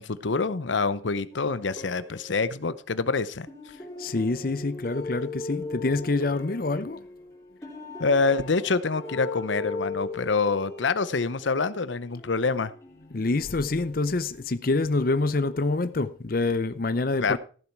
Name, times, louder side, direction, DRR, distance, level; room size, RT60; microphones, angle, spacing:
voice 1, 0.0-3.5 8.0-12.7 17.2-17.4, left 4 dB, 80° left, 0.8 m, -26 dB
sound 1, 1.3-3.0 3.5-14.3 14.9-15.9, left 3 dB, 15° left, 3.0 m, -40 dB
voice 2, 4.0-7.0 13.1-17.4, left 3 dB, 50° left, 0.6 m, -26 dB
15.0 x 7.2 x 4.5 m
head